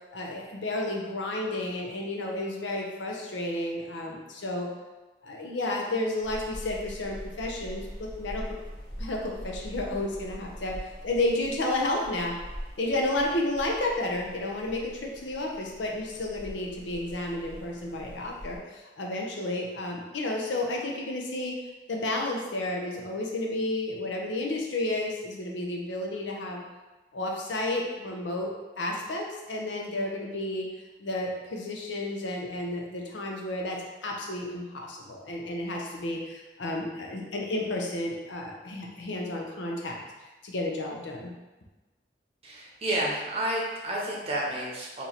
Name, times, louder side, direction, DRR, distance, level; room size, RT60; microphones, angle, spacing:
voice 1, 0.1-4.7 5.2-8.4 9.0-12.4 12.8-21.6 21.9-26.6 27.1-28.5 28.8-30.7 31.0-40.0 40.4-41.3, left 1 dB, 85° left, 0 dB, 0.6 m, -31 dB
sound 1, 6.2-18.6, equal, 30° left, 1.3 m, -43 dB
voice 2, 42.4-45.1, right 1 dB, 35° right, -4 dB, 0.8 m, -30 dB
3.0 x 2.7 x 3.9 m, 1.2 s
head